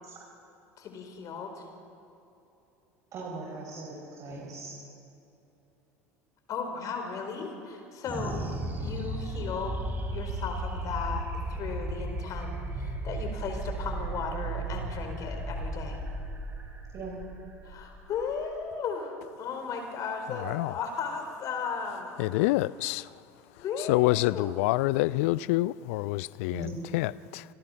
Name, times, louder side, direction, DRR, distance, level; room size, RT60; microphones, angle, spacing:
voice 1, 0.8-1.7 6.5-8.5 8.8-9.8 10.1-16.0 17.6-22.2 23.6-24.5, left 5 dB, 45° left, 4 dB, 4.8 m, -36 dB
voice 2, 3.1-4.7 16.9-17.1 26.5-26.8, right 3 dB, 45° right, -4 dB, 6.5 m, -39 dB
sound 1, 8.0-18.7, right 2 dB, 20° right, 5.3 m, -35 dB
voice 3, 20.4-20.7 22.2-23.1 23.9-26.7 26.9-27.4, left 19 dB, 65° left, 21 dB, 0.5 m, -27 dB
28.5 x 21.0 x 5.8 m, 3.0 s
figure-of-eight pair, 70°, 8 cm